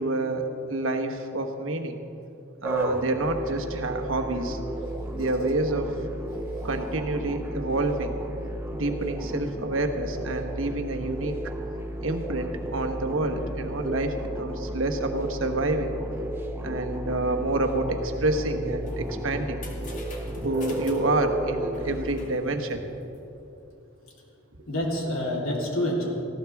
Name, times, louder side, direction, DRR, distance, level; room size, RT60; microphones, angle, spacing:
voice 1, 0.0-2.0 2.6-4.6 5.1-6.0 6.6-8.2 8.7-11.5 12.0-16.0 16.6-19.7 20.3-22.9, right 2 dB, 75° right, 5 dB, 1.2 m, -28 dB
sound 1, 2.6-22.3, right 1 dB, 10° right, 0.8 m, -33 dB
sound 2, 18.7-23.6, left 2 dB, 40° left, 2.2 m, -48 dB
voice 2, 20.1-20.6 24.7-26.1, left 1 dB, 85° left, -3 dB, 3.4 m, -28 dB
19.5 x 15.5 x 3.5 m, 2.8 s
head